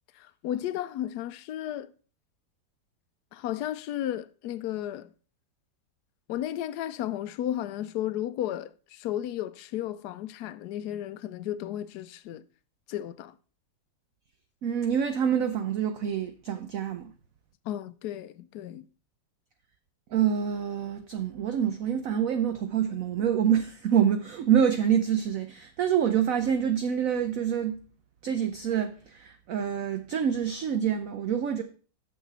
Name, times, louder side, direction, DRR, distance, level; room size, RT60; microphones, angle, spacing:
voice 1, 0.1-1.9 3.3-5.1 6.3-12.4 12.9-13.3 17.6-18.9, left 12 dB, 75° left, 1.0 m, -34 dB
voice 2, 14.6-17.1 20.1-27.8 28.2-31.6, right 8 dB, 65° right, 0.9 m, -26 dB
6.7 x 6.6 x 5.4 m
omnidirectional pair, 1.9 m